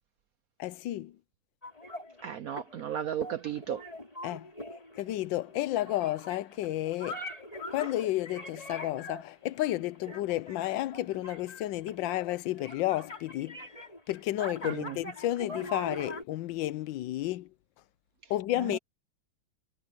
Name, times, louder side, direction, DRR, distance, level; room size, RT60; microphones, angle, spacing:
voice 1, 0.6-1.1 4.2-7.2 7.7-13.6 14.1-17.5 18.3-18.8, left 15 dB, 75° left, 1.4 m, -32 dB
sound 1, 1.6-16.2, left 1 dB, 15° left, 4.8 m, -43 dB
voice 2, 2.2-3.8 14.6-15.0 18.6-18.8, right 9 dB, 65° right, 0.9 m, -35 dB
omnidirectional pair, 2.1 m